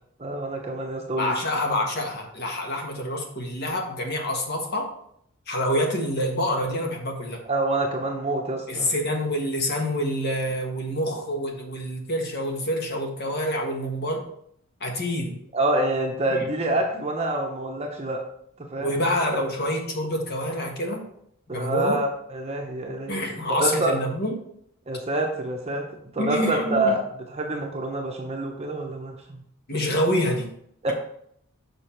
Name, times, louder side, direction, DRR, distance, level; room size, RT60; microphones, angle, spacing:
voice 1, 0.2-1.3 7.5-8.9 15.5-18.2 18.6-18.9 21.5-23.1 23.6-23.9 24.9-25.8 26.1-29.4 30.8-30.9, right 2 dB, 30° right, 1 dB, 0.8 m, -27 dB
voice 2, 1.2-4.8 5.5-7.4 8.7-14.2 14.8-15.4 16.3-16.5 18.8-21.0 21.5-22.0 23.1-24.3 26.2-26.9 29.7-30.4, equal, 45° left, 1 dB, 1.4 m, -27 dB
6.9 x 5.4 x 4.4 m, 0.69 s
head